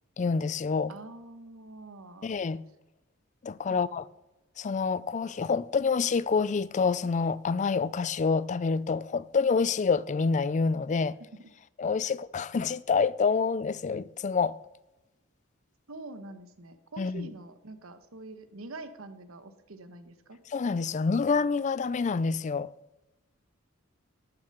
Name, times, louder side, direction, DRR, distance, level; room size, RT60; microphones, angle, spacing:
voice 1, 0.2-0.9 2.2-2.6 3.4-4.0 4.6-11.2 11.8-14.6 17.0-17.3 20.5-22.7, left 5 dB, 35° left, 0.4 m, -27 dB
voice 2, 0.9-2.3 3.7-3.8 11.2-11.5 12.0-12.2 15.9-20.4, right 2 dB, 80° right, 1.1 m, -45 dB
12.0 x 6.8 x 6.7 m
head